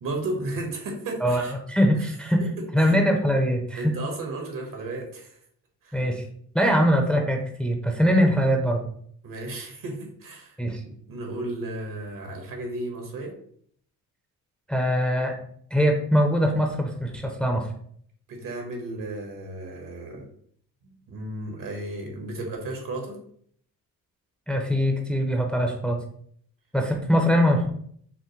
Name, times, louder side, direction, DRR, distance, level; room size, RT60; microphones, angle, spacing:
voice 1, 0.0-1.5 2.4-2.5 2.8-2.9 3.8-5.4 5.8-6.0 9.2-10.6 10.8-13.3 18.3-20.2 20.8-23.2, right 2 dB, 65° right, 1 dB, 1.4 m, -34 dB
voice 2, 1.2-2.5 2.7-4.0 5.9-6.2 6.5-8.8 10.6-10.8 14.7-15.4 15.7-17.7 24.5-26.0 26.7-27.7, equal, ahead, 2 dB, 0.6 m, -22 dB
5.7 x 2.1 x 3.1 m, 0.62 s
cardioid pair, 80°, 36 cm